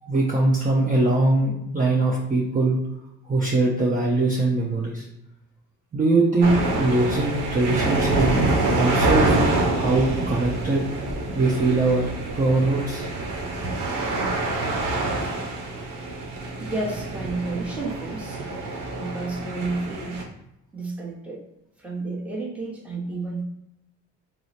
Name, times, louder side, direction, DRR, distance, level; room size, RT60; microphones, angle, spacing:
voice 1, 0.0-2.8 3.2-5.0 5.9-8.4 8.7-10.8 11.3-13.1, right 2 dB, 30° right, -4 dB, 0.6 m, -22 dB
sound 1, 6.4-20.2, right 2 dB, 80° right, 0.8 m, -26 dB
voice 2, 16.6-18.4 18.9-20.2 20.7-21.4 21.8-23.4, right 3 dB, 5° right, -3 dB, 0.9 m, -31 dB
3.0 x 2.0 x 4.0 m, 0.83 s
cardioid pair, 90°, 30 cm